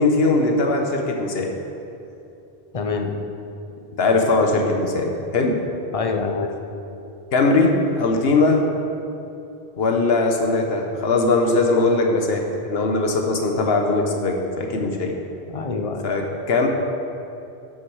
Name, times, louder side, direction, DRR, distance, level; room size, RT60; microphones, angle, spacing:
voice 1, 0.0-1.5 4.0-5.6 7.3-8.7 9.8-15.1 16.0-16.7, left 3 dB, 70° left, 2 dB, 1.2 m, -20 dB
voice 2, 2.7-3.1 5.9-6.5 15.5-16.0, left 4 dB, 40° left, 4 dB, 0.7 m, -25 dB
11.5 x 6.3 x 4.8 m, 2.8 s
omnidirectional pair, 1.1 m